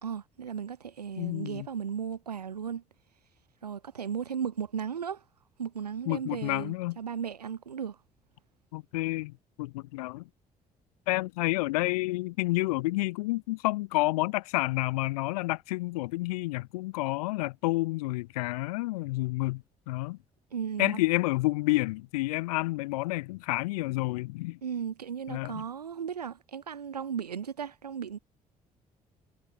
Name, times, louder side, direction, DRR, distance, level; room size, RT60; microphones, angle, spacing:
voice 1, 0.0-2.8 3.6-5.2 5.6-8.0 20.5-21.0 24.6-28.2, right 7 dB, 85° right, 0.7 m, -35 dB
voice 2, 1.2-1.7 6.1-7.0 8.7-10.3 11.1-20.2 20.8-24.6 25.3-25.6, left 21 dB, 70° left, 0.5 m, -29 dB
figure-of-eight pair, 45°, 20 cm